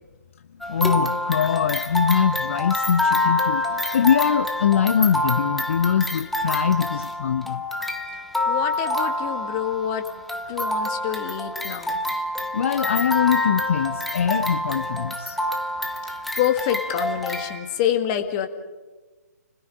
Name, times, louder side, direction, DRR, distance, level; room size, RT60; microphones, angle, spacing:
sound 1, 0.6-17.6, left 1 dB, ahead, 0.8 m, -27 dB
voice 1, 0.7-7.6 12.5-15.4, left 8 dB, 45° left, 8 dB, 0.8 m, -22 dB
voice 2, 8.5-10.0 10.5-12.0 16.4-18.5, left 10 dB, 25° left, 6 dB, 1.8 m, -26 dB
30.0 x 20.5 x 5.0 m, 1.2 s
figure-of-eight pair, 135°, 9 cm